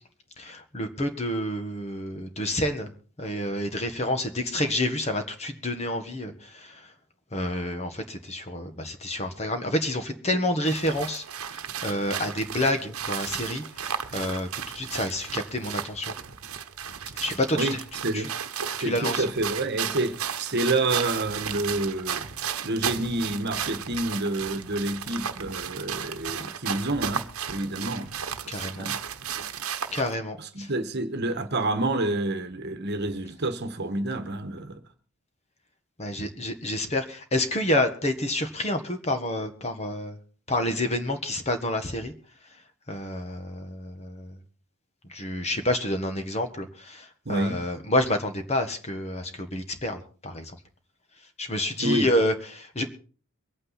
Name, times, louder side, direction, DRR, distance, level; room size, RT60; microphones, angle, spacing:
voice 1, 0.4-2.9 3.2-6.9 7.3-16.1 17.1-17.8 18.1-18.2 18.8-19.2 28.5-28.8 29.9-30.7 36.0-40.2 40.5-42.1 42.9-44.4 45.0-50.6 51.4-52.8, left 1 dB, 30° left, 1.6 m, -29 dB
sound 1, 10.7-30.1, right 8 dB, 70° right, 1.1 m, -34 dB
voice 2, 18.8-22.3 22.6-28.1 28.7-29.0 30.4-34.8 47.2-47.6 51.8-52.1, right 2 dB, 50° right, 1.3 m, -28 dB
23.5 x 8.9 x 4.2 m
head